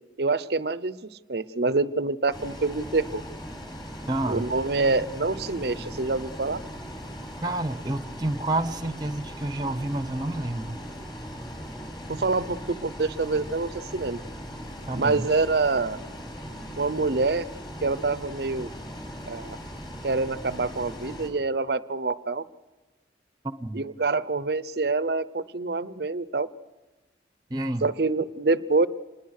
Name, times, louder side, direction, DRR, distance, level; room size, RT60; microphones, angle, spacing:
voice 1, 0.2-1.0 1.3-3.2 4.3-6.6 12.1-14.2 14.9-16.0 16.8-17.5 17.8-18.7 19.3-19.6 20.0-22.4 23.7-26.5 27.8-28.9, right 3 dB, 55° right, 16 dB, 0.7 m, -26 dB
Bus, 2.3-21.3, equal, 25° left, 4.7 m, -39 dB
voice 2, 4.1-4.5 7.4-10.8 14.9-15.3 23.4-23.8 27.5-27.9, right 2 dB, 20° right, 11 dB, 0.9 m, -29 dB
27.0 x 20.5 x 6.6 m, 1.2 s
head